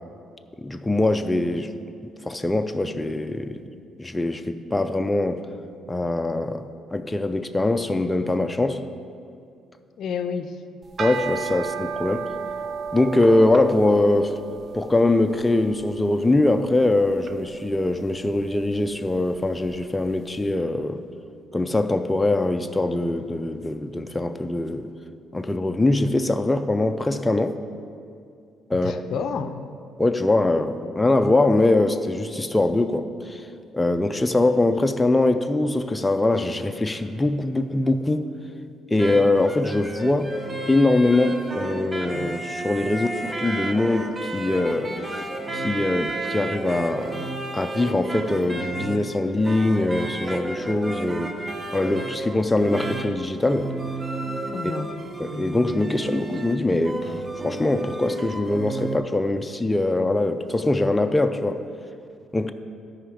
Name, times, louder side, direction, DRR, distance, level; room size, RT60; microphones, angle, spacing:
voice 1, 0.6-1.7 2.2-3.6 4.0-5.4 5.9-6.6 6.9-8.8 11.0-12.3 12.9-14.4 14.7-21.0 21.5-24.9 25.3-27.6 28.7-29.2 30.0-33.5 33.7-38.3 38.9-40.3 40.7-47.2 47.5-51.3 51.7-53.7 55.2-57.1 57.4-61.6 62.3-62.5, left 2 dB, 15° left, 7 dB, 0.5 m, -22 dB
voice 2, 10.0-10.5 28.8-29.7 54.5-54.9, left 6 dB, 70° left, 9 dB, 0.5 m, -29 dB
sound 1, 10.8-20.2, right 6 dB, 45° right, 0.5 m, -35 dB
sound 2, 39.0-59.0, right 2 dB, 25° right, 0.8 m, -32 dB
13.0 x 5.0 x 4.8 m, 2.4 s
cardioid pair, 80°, 0 cm